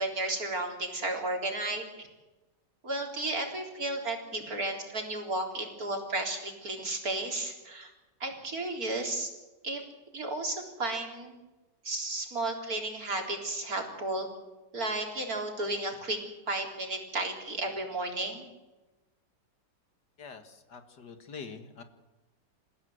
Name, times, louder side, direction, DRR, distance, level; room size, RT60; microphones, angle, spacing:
voice 1, 0.0-2.1 2.8-7.9 8.2-9.3 9.6-9.8 10.1-11.4 11.8-14.3 14.7-16.2 16.5-18.5, right 2 dB, 55° right, 2 dB, 4.3 m, -33 dB
voice 2, 20.2-21.8, left 5 dB, 70° left, 7 dB, 2.5 m, -45 dB
28.5 x 15.5 x 7.9 m, 1.1 s
omnidirectional pair, 1.9 m